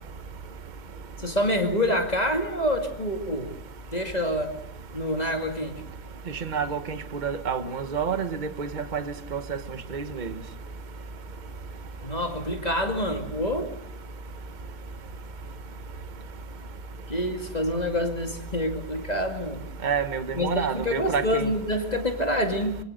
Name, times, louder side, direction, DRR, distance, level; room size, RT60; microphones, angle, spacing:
voice 1, 1.2-3.5 3.9-4.5 4.9-5.8 12.0-13.7 17.1-19.7 20.3-22.8, equal, 25° left, 4 dB, 2.3 m, -27 dB
voice 2, 6.4-9.0 9.3-9.6 9.9-10.3 19.8-21.5, right 6 dB, 30° right, 10 dB, 1.2 m, -29 dB
26.0 x 23.0 x 6.6 m, 0.75 s
omnidirectional pair, 1.7 m